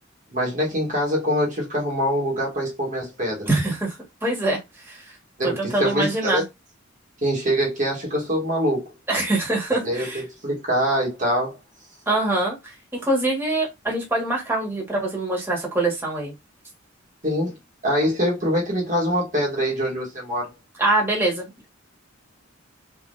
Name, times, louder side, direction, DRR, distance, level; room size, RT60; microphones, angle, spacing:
voice 1, 0.3-3.5 5.4-6.4 7.2-8.9 9.8-11.6 17.2-17.5 17.8-20.5, equal, 40° right, 1.5 m, -24 dB
voice 2, 3.5-5.2 5.4-6.4 9.1-10.2 12.1-16.3 20.8-21.7, right 2 dB, 10° right, 1.8 m, -24 dB
4.3 x 3.6 x 2.7 m
head